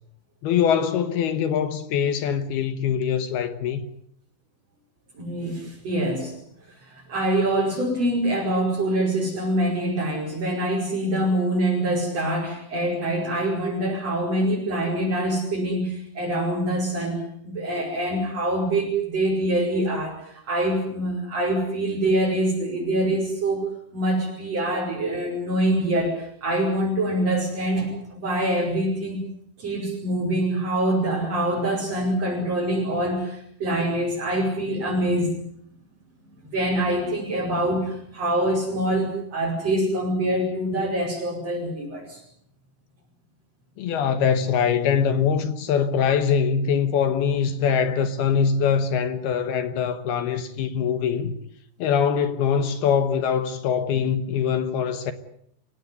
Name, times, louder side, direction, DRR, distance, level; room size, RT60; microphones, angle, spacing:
voice 1, 0.4-3.9 43.8-51.4 51.8-55.1, left 7 dB, 70° left, 2.9 m, -23 dB
voice 2, 5.1-6.4 6.9-23.6 23.9-29.2 29.6-35.5 36.5-42.2, right 1 dB, 35° right, 6.3 m, -25 dB
29.0 x 17.0 x 9.4 m
omnidirectional pair, 5.2 m